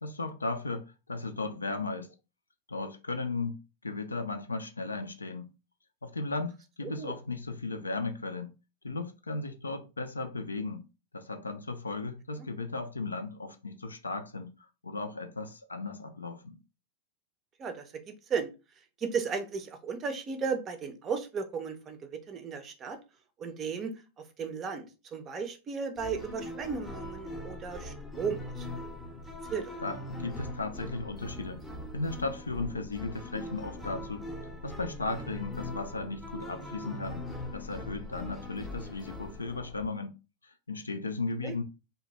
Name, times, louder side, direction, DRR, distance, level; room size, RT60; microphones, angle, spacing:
voice 1, 0.0-2.1 2.7-5.5 6.0-8.5 8.8-10.8 11.1-14.5 14.8-16.6 29.8-31.6 31.9-34.2 34.6-37.2 37.5-40.1 40.4-41.6, left 3 dB, 75° left, 0.4 m, -36 dB
voice 2, 6.8-7.2 17.6-18.5 19.0-23.0 23.4-28.7 29.5-29.7 41.4-41.6, right 5 dB, 30° right, 0.5 m, -35 dB
sound 1, 26.0-39.9, left 1 dB, 10° left, 0.6 m, -41 dB
2.7 x 2.1 x 3.0 m
figure-of-eight pair, 90°, 0 cm